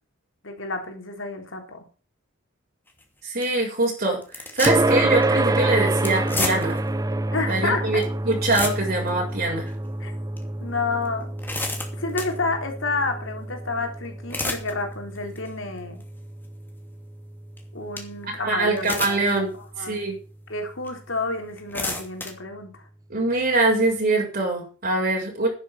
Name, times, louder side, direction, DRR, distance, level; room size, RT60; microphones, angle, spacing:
voice 1, 0.4-1.8 7.3-8.1 10.0-10.1 10.6-11.3 11.9-16.0 17.7-19.2 19.5-20.0 20.5-22.8, left 3 dB, 70° left, 4 dB, 3.9 m, -30 dB
sound 1, 2.9-3.0 3.4-3.6 4.2-5.0 5.2-5.4 6.0-6.9 7.5-7.6 8.0-8.1 8.3-9.1 9.6-9.7 10.4-10.5 11.1-12.4 14.0-14.7 15.2-15.5 16.0-16.1 17.6-17.7 18.0-18.1 18.8-19.4 19.9-20.0 20.8-20.9 21.5-22.3, left 2 dB, 10° left, 2.8 m, -30 dB
voice 2, 3.2-6.8 7.5-9.7 18.4-20.2 23.1-25.5, right 2 dB, 50° right, -3 dB, 5.7 m, -23 dB
sound 2, 4.7-19.6, right 2 dB, 20° right, 0.6 m, -28 dB
11.0 x 9.7 x 7.4 m, 0.37 s
head